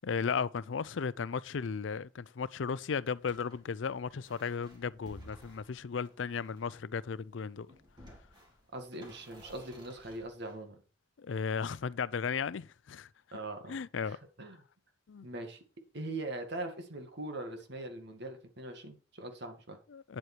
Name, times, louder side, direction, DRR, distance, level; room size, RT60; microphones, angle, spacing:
voice 1, 0.0-7.7 11.2-13.1 13.7-14.2 15.1-15.3 19.9-20.2, left 6 dB, 70° left, 0.5 m, -35 dB
sound 1, 3.2-6.9 7.5-10.6, equal, 25° right, 3.7 m, -56 dB
voice 2, 8.7-10.8 13.3-13.8 14.0-14.6 15.2-15.6 15.9-19.8, right 2 dB, 60° right, 2.1 m, -41 dB
9.7 x 7.9 x 4.5 m
head